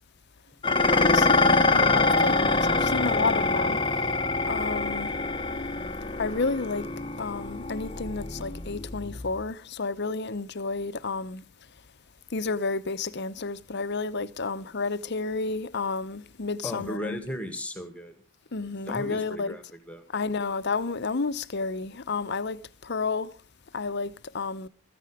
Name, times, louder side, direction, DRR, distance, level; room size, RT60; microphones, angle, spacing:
Dishes pots and pans, 0.6-9.5, left 3 dB, 20° left, 1.0 m, -25 dB
voice 1, 0.8-3.8 4.5-5.1 6.2-6.9 7.2-11.4 12.3-17.2 18.5-19.6 20.1-23.3 23.7-24.7, left 4 dB, 50° left, 0.8 m, -31 dB
voice 2, 16.6-18.2 18.8-20.0, left 1 dB, 5° left, 1.9 m, -36 dB
15.0 x 14.5 x 4.9 m
head